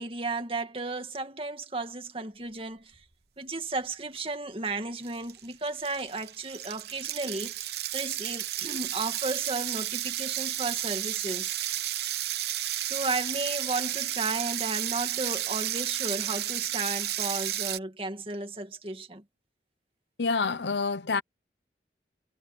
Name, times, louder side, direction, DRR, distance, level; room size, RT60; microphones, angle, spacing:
voice 1, 0.0-3.0 3.4-11.6 12.8-19.2, right 3 dB, 30° right, 2.0 m, -34 dB
sound 1, 4.6-4.7 5.0-17.8, right 13 dB, 65° right, 0.9 m, -32 dB
voice 2, 20.2-21.2, left 4 dB, 80° left, 0.8 m, -27 dB
head